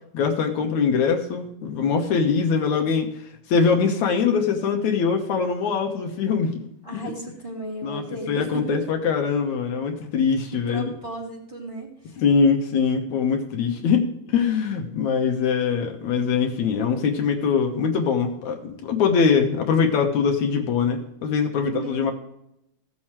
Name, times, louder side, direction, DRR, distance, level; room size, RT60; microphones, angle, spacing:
voice 1, 0.1-3.1 3.5-6.7 6.9-7.1 7.8-10.9 12.2-22.1, left 6 dB, 75° left, 3 dB, 2.4 m, -22 dB
voice 2, 6.8-8.8 10.7-12.2 21.6-22.1, right 2 dB, 10° right, -3 dB, 3.1 m, -34 dB
16.5 x 7.4 x 3.2 m, 0.80 s
omnidirectional pair, 3.4 m